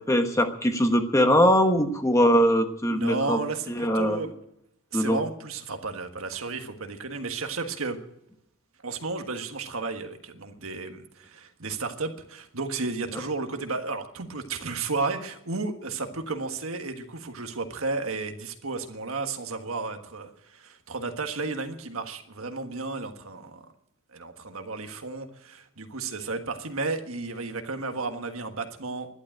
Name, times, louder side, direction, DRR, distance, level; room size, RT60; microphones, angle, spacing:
voice 1, 0.1-3.4 3.7-4.2 4.9-5.2, equal, 15° left, 6 dB, 1.2 m, -21 dB
voice 2, 2.9-4.3 4.9-8.0 8.8-23.7 24.1-29.1, right 3 dB, 75° right, 6 dB, 1.5 m, -33 dB
11.5 x 11.5 x 8.8 m, 0.78 s
head